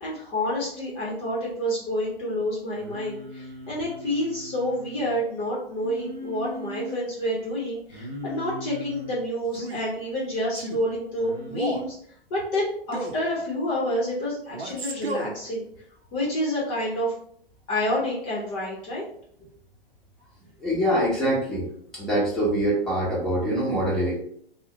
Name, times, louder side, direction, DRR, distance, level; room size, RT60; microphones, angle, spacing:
voice 1, 0.0-12.0 12.3-15.7 16.1-17.1 17.7-19.0, left 1 dB, 30° left, -5 dB, 0.8 m, -28 dB
Singing, 2.8-5.2 5.8-7.0 7.9-9.2 11.2-11.5, left 1 dB, 40° right, 0.8 m, -39 dB
Male speech man speaking, 9.5-9.9 10.5-10.8 11.5-11.9 12.9-13.3 14.5-15.4, right 2 dB, 85° right, 0.6 m, -32 dB
voice 2, 20.6-21.7 21.9-24.1, right 1 dB, ahead, -7 dB, 0.9 m, -24 dB
2.4 x 2.1 x 3.6 m, 0.65 s
figure-of-eight pair, 115°, 30 cm